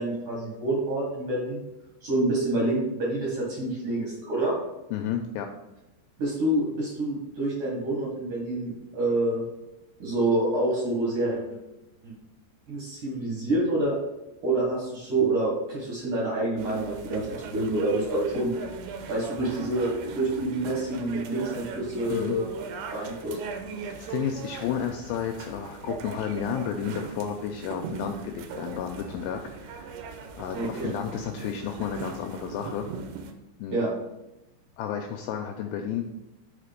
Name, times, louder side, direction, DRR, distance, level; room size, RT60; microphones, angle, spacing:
voice 1, 0.0-1.6 2.0-4.6 6.2-9.4 10.0-11.4 12.0-12.1 12.7-13.9 14.4-18.5 19.1-22.5 22.9-23.4 30.5-30.9 33.7-33.9, right 1 dB, 60° right, -4 dB, 2.2 m, -27 dB
voice 2, 4.9-5.5 22.1-22.4 24.0-30.0 30.4-32.9 33.6-33.8 34.8-36.1, left 8 dB, 85° left, 4 dB, 2.5 m, -32 dB
sound 1, 16.6-33.3, right 6 dB, 80° right, 2.4 m, -39 dB
5.8 x 4.8 x 5.1 m, 0.94 s
omnidirectional pair, 5.3 m